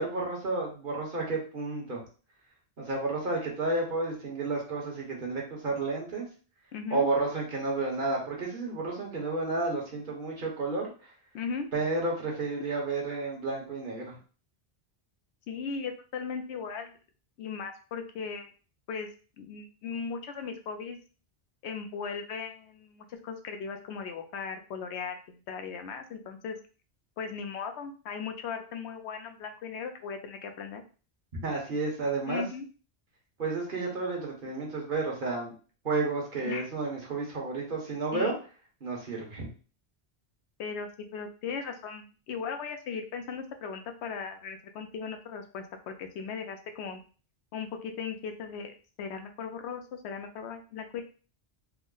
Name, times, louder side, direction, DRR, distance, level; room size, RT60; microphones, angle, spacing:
voice 1, 0.0-2.0 2.8-6.3 6.9-10.9 11.7-14.2 31.4-32.4 33.4-35.5 35.8-38.3 38.8-39.5, right 3 dB, 55° right, -1 dB, 1.2 m, -31 dB
voice 2, 6.7-7.1 11.3-11.7 15.5-17.0 17.4-18.5 18.9-19.1 19.4-21.0 21.6-26.6 27.2-30.8 32.3-32.7 36.4-36.7 38.1-38.4 40.6-47.0 47.5-51.0, left 5 dB, 85° left, 6 dB, 0.9 m, -37 dB
3.5 x 2.0 x 3.7 m, 0.37 s
omnidirectional pair, 1.1 m